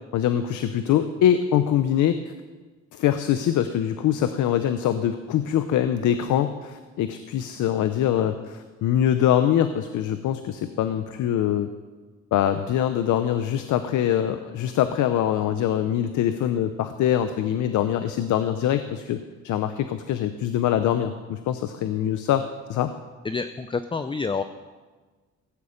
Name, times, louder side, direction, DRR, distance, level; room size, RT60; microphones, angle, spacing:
voice 1, 0.1-2.3 2.9-11.7 12.3-22.9, left 10 dB, 80° left, 10 dB, 0.7 m, -23 dB
voice 2, 23.2-24.4, left 4 dB, 15° left, 11 dB, 0.5 m, -28 dB
16.0 x 8.4 x 5.1 m, 1.4 s
cardioid pair, 90°, 30 cm